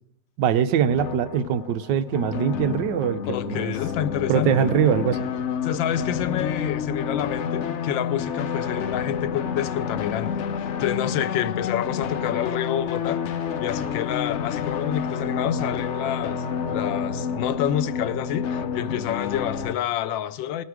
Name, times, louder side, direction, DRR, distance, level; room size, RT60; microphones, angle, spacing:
voice 1, 0.4-3.7 4.3-5.2, right 8 dB, 75° right, 1.3 m, -22 dB
sound 1, 0.9-19.7, left 7 dB, 65° left, 0.7 m, -29 dB
voice 2, 3.3-4.7 5.6-10.4 10.8-13.2 13.6-16.4 16.7-20.6, left 10 dB, 85° left, 1.4 m, -28 dB
18.0 x 9.6 x 4.8 m
omnidirectional pair, 2.0 m